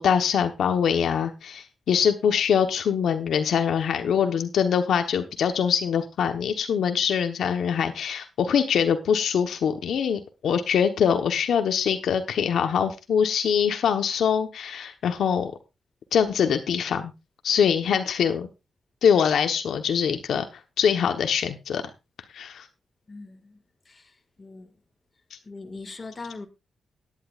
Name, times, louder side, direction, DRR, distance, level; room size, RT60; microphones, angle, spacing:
voice 1, 0.0-15.5 16.1-17.1 17.4-18.5 19.0-20.5 20.8-21.8 22.3-22.7, left 7 dB, 80° left, 1.2 m, -23 dB
voice 2, 23.1-23.6 23.9-24.7 25.4-26.5, left 3 dB, 30° left, 2.0 m, -41 dB
17.0 x 10.5 x 2.5 m
cardioid pair, 110°, 0 cm